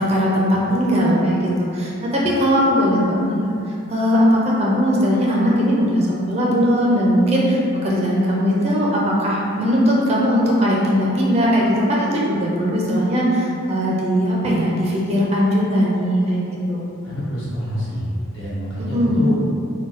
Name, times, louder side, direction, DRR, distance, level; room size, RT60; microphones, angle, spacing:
voice 1, 0.0-3.4 3.9-16.8 18.9-19.3, equal, 30° right, -5 dB, 0.4 m, -19 dB
voice 2, 17.0-19.6, equal, 60° left, -10 dB, 1.0 m, -26 dB
3.9 x 2.2 x 2.5 m, 2.6 s
head